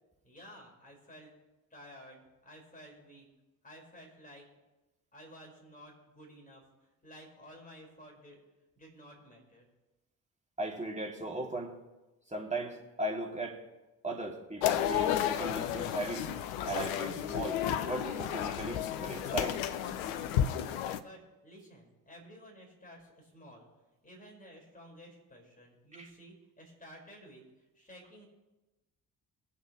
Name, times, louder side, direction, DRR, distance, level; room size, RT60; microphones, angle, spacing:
voice 1, 0.2-1.3 1.7-3.3 3.6-4.5 5.1-6.6 7.0-8.4 8.8-9.7 20.9-23.7 24.0-27.4 27.7-28.2, equal, 20° left, -1 dB, 5.1 m, -53 dB
voice 2, 10.6-11.7 12.3-13.6 14.0-16.3 16.6-19.6 26.0-26.1, right 2 dB, 15° right, 0 dB, 2.6 m, -37 dB
sound 1, 14.6-21.0, left 10 dB, 65° left, 0.8 m, -32 dB
22.0 x 8.0 x 3.2 m, 1.1 s
figure-of-eight pair, 45°, 44 cm